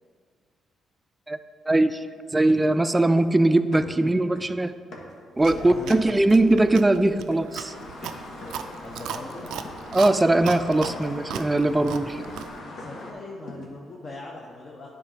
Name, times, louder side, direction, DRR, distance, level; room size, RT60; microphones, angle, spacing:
voice 1, 1.7-2.0 2.3-4.7 5.4-7.7 9.9-12.2, right 2 dB, 15° right, 11 dB, 0.4 m, -21 dB
sound 1, 2.5-3.4 3.7-5.3 5.9-6.2 6.6-6.9 7.3-7.6 8.0-8.7 9.0-9.3 9.6-10.0 10.3-10.6 10.9-13.1 13.5-13.8, left 2 dB, 75° left, 1.3 m, -44 dB
Chewing mastication, 5.4-12.6, right 8 dB, 85° right, 0.4 m, -37 dB
voice 2, 5.5-6.2 8.4-9.6 12.8-14.9, left 2 dB, 40° left, -2 dB, 0.9 m, -40 dB
sound 2, 7.7-13.1, left 2 dB, 60° left, 1.1 m, -41 dB
9.8 x 3.8 x 5.0 m, 2.1 s
cardioid pair, 90°, 0 cm